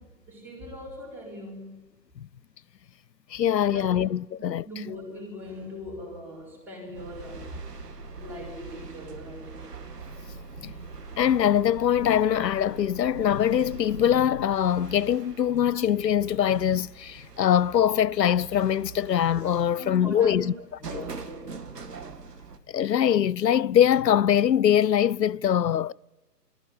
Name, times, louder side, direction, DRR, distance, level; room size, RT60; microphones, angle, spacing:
voice 1, 0.0-1.8 3.6-4.0 4.6-7.7 8.2-9.7 19.8-21.6, equal, 5° right, 4.2 m, -40 dB
voice 2, 3.3-4.7 10.6-10.7 11.2-20.5 20.9-21.0 22.7-25.9, left 10 dB, 85° left, 0.6 m, -23 dB
sound 1, 6.9-22.6, right 4 dB, 70° right, 2.3 m, -43 dB
22.0 x 15.0 x 9.6 m
figure-of-eight pair, 145°, 49 cm